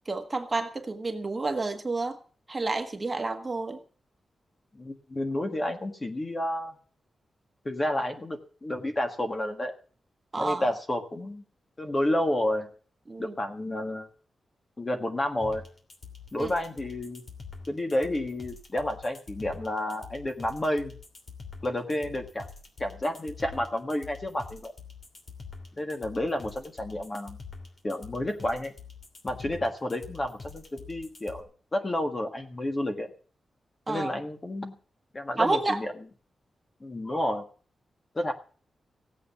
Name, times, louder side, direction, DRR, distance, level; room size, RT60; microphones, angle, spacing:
voice 1, 0.1-2.2 2.5-3.8 10.3-10.6 13.1-13.3 16.4-16.5 33.9-34.1 35.4-35.8, right 3 dB, 25° right, 5 dB, 1.5 m, -29 dB
voice 2, 4.7-6.7 7.6-9.7 10.4-11.4 11.8-12.7 13.2-14.1 14.8-15.6 16.3-17.2 17.7-20.9 21.6-22.5 22.8-24.7 25.8-27.4 27.8-28.7 29.2-33.1 33.9-34.7 35.1-35.9 36.8-37.5 38.1-38.3, left 1 dB, 25° left, 5 dB, 1.6 m, -30 dB
sound 1, 15.4-31.4, left 5 dB, 45° left, 2.8 m, -45 dB
16.5 x 8.3 x 7.1 m, 0.42 s
wide cardioid pair, 155°, 0 cm